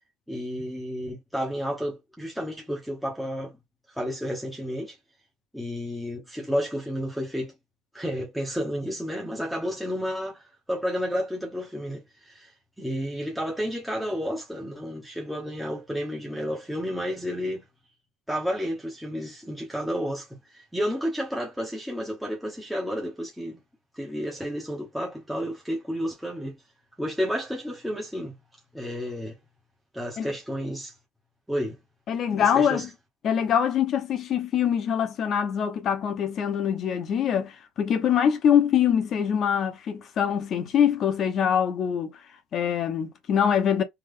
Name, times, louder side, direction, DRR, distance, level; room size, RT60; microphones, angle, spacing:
voice 1, 0.3-3.6 3.9-5.0 5.5-7.5 7.9-12.5 12.8-17.6 18.3-23.6 23.9-26.6 27.0-28.4 28.7-29.4 29.9-30.9 31.5-31.8 32.3-32.8, equal, ahead, 1.0 m, -31 dB
voice 2, 32.1-32.9 33.2-42.1 42.5-43.8, left 8 dB, 45° left, 0.9 m, -24 dB
3.4 x 2.4 x 3.7 m
cardioid pair, 135°, 0 cm